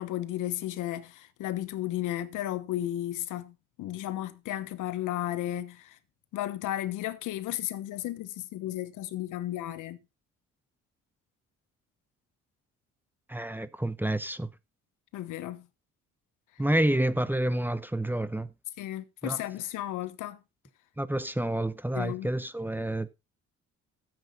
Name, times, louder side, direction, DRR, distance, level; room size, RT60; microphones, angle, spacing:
voice 1, 0.0-6.0 6.3-10.0 15.1-15.7 18.8-20.4 21.9-22.3, left 13 dB, 90° left, 1.2 m, -34 dB
voice 2, 13.3-14.5 16.6-18.5 19.2-19.4 21.0-23.1, right 1 dB, 5° right, 0.8 m, -29 dB
13.5 x 7.8 x 4.0 m
cardioid pair, 90°, 30 cm